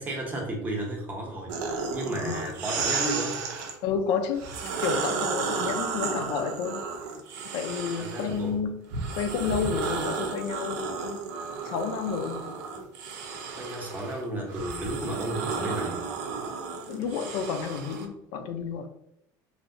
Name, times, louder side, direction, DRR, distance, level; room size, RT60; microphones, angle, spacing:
voice 1, 0.0-1.6 1.9-3.4 8.0-8.5 13.5-16.1, right 1 dB, 20° right, 0 dB, 0.7 m, -33 dB
sound 1, 1.5-3.8 4.3-8.4 8.9-18.1, right 4 dB, 90° right, 0.6 m, -33 dB
voice 2, 3.8-4.4 4.8-6.8 7.5-8.8 9.1-11.2 11.6-12.6 16.9-18.9, left 6 dB, 70° left, 6 dB, 0.4 m, -30 dB
3.1 x 2.7 x 2.6 m, 0.78 s
cardioid pair, 160°, 9 cm